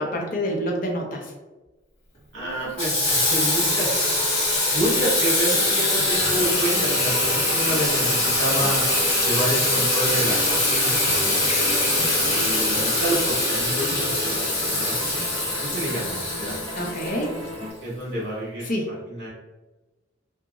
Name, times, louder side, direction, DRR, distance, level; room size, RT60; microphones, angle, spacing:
voice 1, 0.0-1.3 16.8-17.3 18.7-19.0, equal, 45° left, 0 dB, 0.6 m, -27 dB
voice 2, 2.3-4.2 4.7-8.8 9.2-10.9 11.2-11.8 12.4-14.9 15.6-16.6 17.8-18.6 19.1-19.3, right 1 dB, 65° right, -6 dB, 1.5 m, -29 dB
Water tap faucet / Sink (filling or washing), 2.8-17.5, left 2 dB, 30° left, 1.1 m, -23 dB
sound 1, 5.5-17.7, right 1 dB, 30° right, 0.8 m, -35 dB
2.9 x 2.5 x 2.3 m, 1.1 s
head